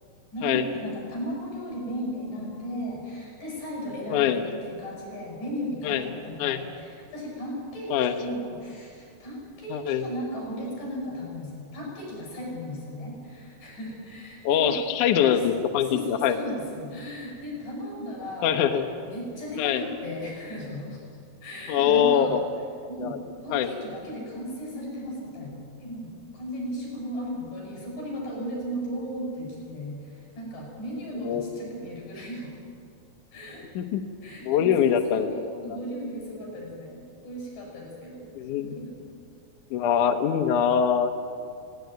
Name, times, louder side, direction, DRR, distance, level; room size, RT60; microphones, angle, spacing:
voice 1, 0.3-15.0 15.3-15.5 15.8-21.0 21.4-22.4 22.9-32.6 33.3-33.6 34.2-38.3 38.6-39.0, equal, 55° left, -2 dB, 9.1 m, -36 dB
voice 2, 4.1-4.4 5.8-6.0 6.4-6.6 7.9-8.1 9.7-10.0 14.4-16.4 18.4-18.9 19.6-19.9 21.7-22.4 23.0-23.2 23.5-23.7 31.2-31.4 33.8-34.0 34.5-35.3 35.6-35.8 38.4-38.7 39.7-41.1, left 9 dB, 70° left, 6 dB, 1.9 m, -23 dB
19.0 x 18.0 x 9.3 m, 2.4 s
omnidirectional pair, 4.6 m